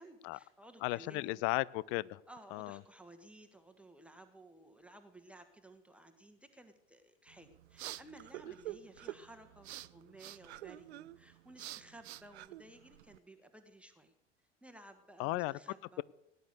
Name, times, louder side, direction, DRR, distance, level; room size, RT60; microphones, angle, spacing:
voice 1, 0.0-1.4 2.3-14.1 14.6-16.0, right 1 dB, 5° right, 6 dB, 1.5 m, -56 dB
voice 2, 0.8-2.2 2.5-2.8 15.2-15.5, left 20 dB, 35° left, 23 dB, 0.5 m, -35 dB
sound 1, 7.3-13.2, right 14 dB, 60° right, 0.6 m, -48 dB
18.5 x 10.5 x 6.6 m, 0.87 s
figure-of-eight pair, 75°, 36 cm